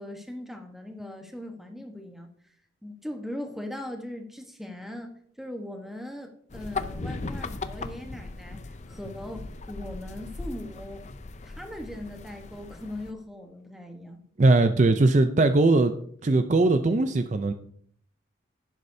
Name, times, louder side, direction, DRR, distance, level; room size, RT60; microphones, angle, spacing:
voice 1, 0.0-2.3 2.8-11.0 11.4-14.2, left 1 dB, ahead, 3 dB, 1.1 m, -39 dB
sound 1, 6.5-13.1, left 3 dB, 35° left, 0.5 m, -38 dB
voice 2, 14.4-15.9 16.2-17.5, right 2 dB, 40° right, 9 dB, 0.4 m, -20 dB
11.0 x 9.8 x 2.7 m, 0.63 s
head